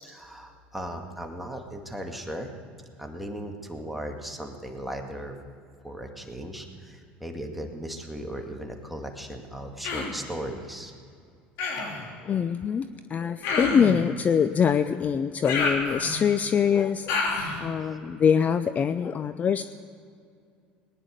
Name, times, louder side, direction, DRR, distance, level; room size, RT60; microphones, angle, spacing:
voice 1, 0.0-2.5 3.0-5.4 5.8-10.9 11.8-11.9, right 1 dB, ahead, 2 dB, 2.1 m, -37 dB
Human voice, 9.8-10.2 11.6-12.0 13.4-14.0 15.4-16.3 17.1-17.6, left 3 dB, 65° left, 3.1 m, -28 dB
voice 2, 12.3-19.6, left 7 dB, 35° left, 12 dB, 0.5 m, -24 dB
19.0 x 10.0 x 6.6 m, 2.3 s
supercardioid pair, 90°, 5 cm